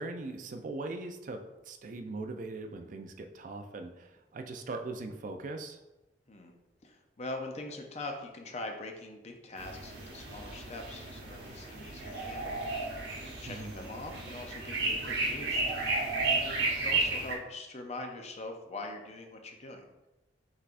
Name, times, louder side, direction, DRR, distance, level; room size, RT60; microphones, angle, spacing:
voice 1, 0.0-5.8 13.5-13.7, right 2 dB, 45° right, 6 dB, 0.4 m, -40 dB
voice 2, 6.8-13.1 13.4-15.8 16.2-19.9, left 2 dB, 35° left, 3 dB, 0.5 m, -43 dB
sound 1, 9.6-17.4, right 3 dB, 75° right, 1.0 m, -33 dB
5.7 x 3.3 x 2.5 m, 0.99 s
head